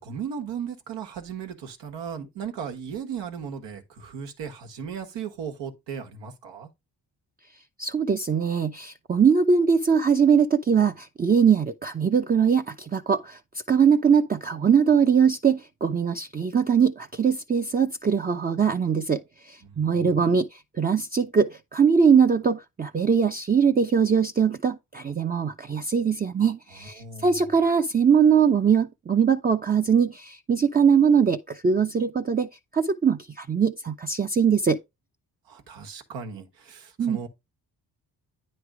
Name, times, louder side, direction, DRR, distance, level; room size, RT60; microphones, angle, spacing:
voice 1, 0.0-6.7 19.6-20.3 27.0-27.4 35.5-37.3, right 7 dB, 90° right, 1.3 m, -36 dB
voice 2, 7.8-13.4 13.7-19.2 19.5-34.8 37.0-37.2, right 6 dB, 20° right, 0.5 m, -21 dB
9.3 x 3.3 x 4.7 m
supercardioid pair, 55°, 42 cm